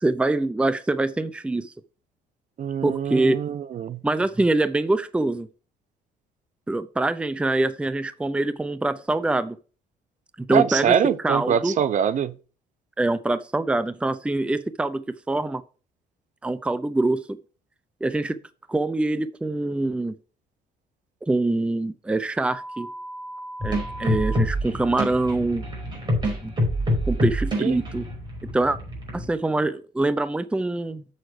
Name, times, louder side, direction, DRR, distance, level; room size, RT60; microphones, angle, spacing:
voice 1, 0.0-1.7 2.8-3.4 4.0-5.5 6.7-9.6 10.4-11.0 11.2-11.7 13.0-15.6 16.4-17.2 18.0-18.4 18.7-20.1 21.3-22.9 23.6-25.6 26.4-26.5 27.1-28.1 28.5-28.8 29.1-31.0, right 2 dB, 5° right, 0.5 m, -24 dB
voice 2, 2.6-4.0 10.5-12.3 27.6-27.8, right 8 dB, 45° right, 0.6 m, -24 dB
sound 1, 22.4-24.4, right 1 dB, 85° right, 2.2 m, -37 dB
sound 2, 23.6-29.3, equal, 25° right, 5.1 m, -27 dB
7.7 x 6.4 x 4.9 m
cardioid pair, 110°, 17 cm